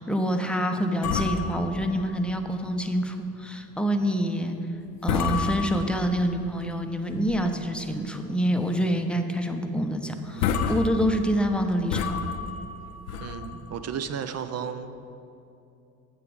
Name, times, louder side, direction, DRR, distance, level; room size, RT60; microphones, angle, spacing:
voice 1, 0.0-4.7 5.0-12.2, equal, ahead, 5 dB, 0.7 m, -26 dB
sound 1, 1.0-2.8 3.2-3.3 3.8-4.1 4.6-4.8 5.0-6.4 6.9-7.7 8.1-8.2 8.7-8.9 9.2-9.3 9.9-10.0 10.3-14.0, left 6 dB, 85° left, 0.6 m, -30 dB
voice 2, 13.2-15.0, right 7 dB, 35° right, 10 dB, 0.6 m, -34 dB
8.5 x 6.9 x 4.8 m, 2.7 s
hypercardioid pair, 50°, 45 cm